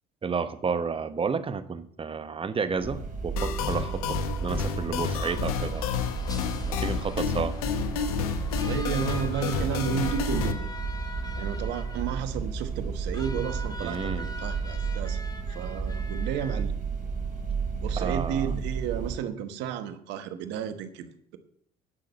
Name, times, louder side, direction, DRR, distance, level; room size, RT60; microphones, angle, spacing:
voice 1, 0.2-5.9 6.7-7.6 13.8-14.4 18.0-18.5, right 5 dB, 30° right, 12 dB, 1.0 m, -31 dB
sound 1, 2.8-19.2, right 5 dB, 50° right, 4.9 m, -32 dB
sound 2, 3.4-10.5, left 8 dB, 90° left, 0.8 m, -31 dB
sound 3, 5.2-16.6, left 2 dB, 20° left, 1.6 m, -44 dB
voice 2, 8.6-10.7 11.4-15.2 15.5-16.7 17.8-21.1, right 8 dB, 70° right, 10 dB, 1.1 m, -32 dB
9.9 x 6.1 x 7.0 m, 0.66 s
hypercardioid pair, 70°, 18 cm